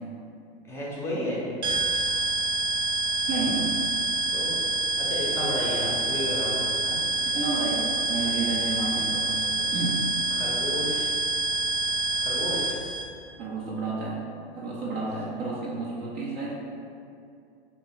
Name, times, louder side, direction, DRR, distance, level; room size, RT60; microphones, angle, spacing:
voice 1, 0.7-1.4 4.3-4.6 5.0-7.0 10.3-11.1 12.2-12.7 14.9-15.1, left 1 dB, 10° left, -6 dB, 0.7 m, -32 dB
sound 1, 1.6-13.0, right 3 dB, 90° right, 0.8 m, -27 dB
voice 2, 3.3-3.8 7.2-9.4 9.7-10.0 13.4-14.2 14.5-16.6, right 3 dB, 30° right, -5 dB, 0.5 m, -31 dB
3.4 x 2.6 x 3.5 m, 2.5 s
hypercardioid pair, 110°, 32 cm